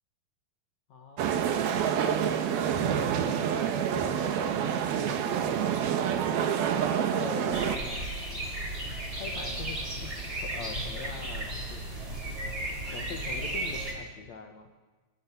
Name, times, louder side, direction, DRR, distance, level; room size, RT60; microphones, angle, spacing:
voice 1, 0.9-1.4 1.9-3.3 4.2-5.8 7.0-8.1 9.1-11.8 12.9-14.7, left 6 dB, 65° left, 4 dB, 1.8 m, -43 dB
sound 1, 1.2-7.8, right 8 dB, 65° right, 3.0 m, -27 dB
sound 2, 7.5-13.9, right 1 dB, 20° right, 5.8 m, -34 dB
25.5 x 21.5 x 7.3 m, 1.3 s
omnidirectional pair, 5.2 m